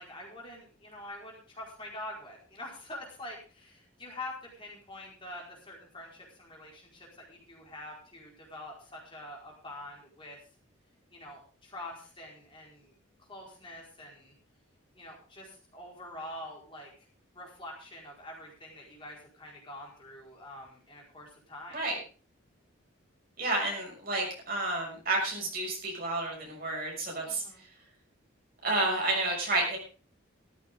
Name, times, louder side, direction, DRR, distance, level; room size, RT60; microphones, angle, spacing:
voice 1, 0.0-10.4 11.1-12.9 13.3-14.3 14.9-17.1 17.3-21.8 27.3-27.6, left 1 dB, 25° left, -2 dB, 4.8 m, -45 dB
voice 2, 23.4-27.4 28.6-29.8, right 2 dB, 45° right, 0 dB, 6.4 m, -30 dB
16.0 x 14.0 x 3.7 m, 0.37 s
head